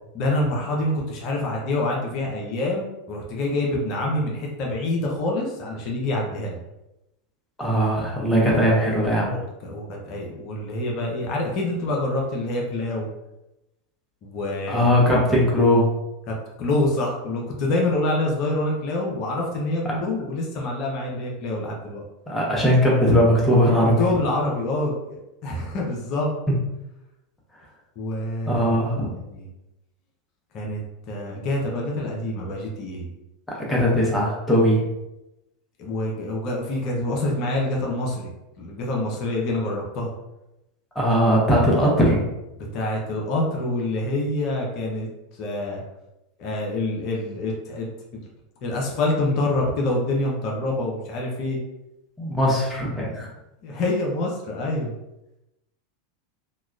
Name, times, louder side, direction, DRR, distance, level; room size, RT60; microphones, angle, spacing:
voice 1, 0.1-6.6 9.3-13.1 14.2-14.9 16.3-22.0 24.0-26.3 28.0-28.9 29.2-29.5 30.5-30.8 31.1-33.1 35.8-38.3 38.6-40.1 42.6-45.1 45.3-45.8 46.4-47.9 48.6-51.6 53.6-55.0, left 2 dB, 45° left, -1 dB, 0.6 m, -26 dB
voice 2, 7.6-9.3 14.7-15.9 22.3-23.9 28.5-29.1 33.6-34.8 40.9-42.2 52.2-53.3, equal, 10° left, -4 dB, 0.9 m, -19 dB
2.9 x 2.2 x 2.4 m, 0.93 s
figure-of-eight pair, 85°, 0 cm